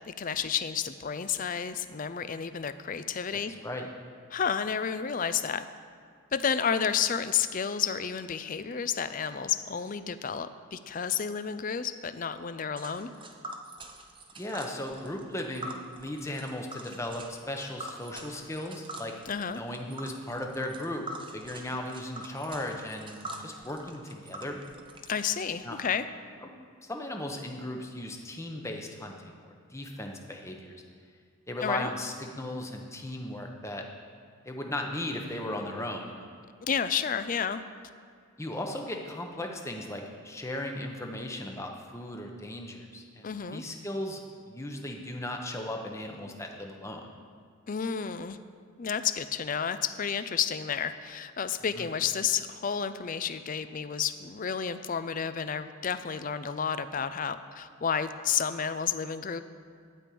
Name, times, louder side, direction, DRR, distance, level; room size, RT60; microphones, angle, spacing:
voice 1, 0.1-3.5 4.3-5.7 6.3-13.1 19.3-19.6 25.1-26.1 31.6-31.9 36.6-37.6 43.2-43.6 47.7-48.4 48.8-59.4, left 7 dB, 40° left, 12 dB, 0.4 m, -31 dB
voice 2, 3.3-3.9 14.4-19.1 19.5-21.1 21.3-24.6 25.6-25.8 26.4-26.5 26.9-30.8 31.5-33.8 34.4-36.3 38.4-47.1 51.7-51.9, left 1 dB, 15° left, 2 dB, 0.9 m, -37 dB
Tick, 12.8-25.4, right 2 dB, 20° right, 0.7 m, -45 dB
12.0 x 5.3 x 8.5 m, 2.2 s
head